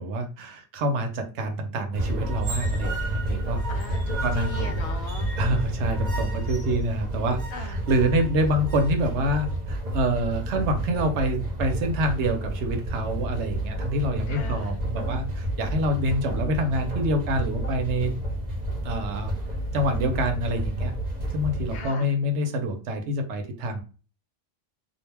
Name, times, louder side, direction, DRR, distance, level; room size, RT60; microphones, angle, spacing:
voice 1, 0.0-3.6 4.2-4.8 5.4-18.1 18.8-19.3 19.7-20.9 21.3-23.8, right 1 dB, 75° right, 5 dB, 0.9 m, -26 dB
sound 1, 1.9-21.9, right 1 dB, 40° right, 0.8 m, -30 dB
voice 2, 3.7-5.3 7.5-7.8 14.3-14.8 21.7-22.1, left 5 dB, 70° left, 4 dB, 0.9 m, -39 dB
2.4 x 2.1 x 3.2 m, 0.35 s
omnidirectional pair, 1.2 m